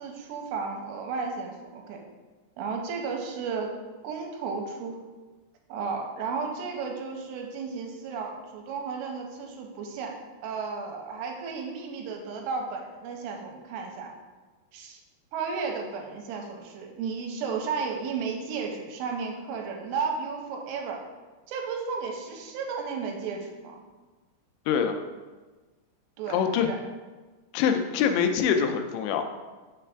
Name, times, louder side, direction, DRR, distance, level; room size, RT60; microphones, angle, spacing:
voice 1, 0.0-2.0 2.6-3.7 4.0-5.0 5.7-10.2 10.4-14.1 14.7-15.0 15.3-21.0 21.5-23.8 26.2-26.8, right 5 dB, 85° right, 2 dB, 2.8 m, -33 dB
voice 2, 24.7-25.0 26.3-26.7 27.5-29.3, left 7 dB, 90° left, 6 dB, 2.8 m, -24 dB
6.5 x 3.3 x 5.6 m, 1.3 s
omnidirectional pair, 5.0 m